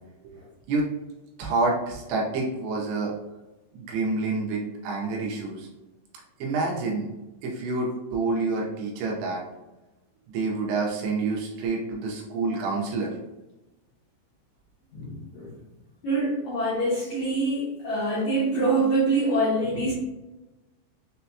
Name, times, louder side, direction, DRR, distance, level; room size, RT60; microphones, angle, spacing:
voice 1, 1.4-3.1 3.7-5.7 6.4-7.1 7.4-9.4 10.3-13.2, right 3 dB, 80° right, -2 dB, 2.7 m, -28 dB
voice 2, 14.9-15.5 16.0-19.9, right 2 dB, 75° left, -8 dB, 1.7 m, -25 dB
6.6 x 2.2 x 2.7 m, 1.0 s
omnidirectional pair, 4.8 m